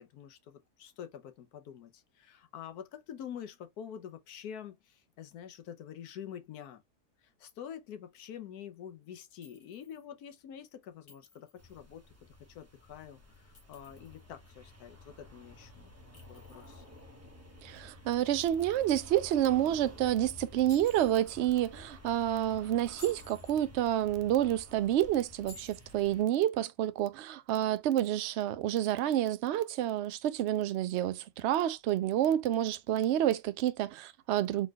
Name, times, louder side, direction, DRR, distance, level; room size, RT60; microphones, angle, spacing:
voice 1, 0.0-6.8 7.2-12.0 12.5-15.9 16.3-16.8, left 9 dB, 75° left, 1.3 m, -47 dB
Chink clink, 9.4-10.0 11.1-11.7 13.3-14.2 16.1-17.0 18.4-19.1 20.7-21.4 22.8-23.6 25.5-26.1, left 3 dB, 45° left, 1.8 m, -55 dB
sound 1, 11.6-26.2, left 2 dB, 10° right, 0.8 m, -52 dB
voice 2, 17.6-34.7, right 12 dB, 70° right, 0.6 m, -29 dB
4.1 x 3.8 x 2.3 m
omnidirectional pair, 1.6 m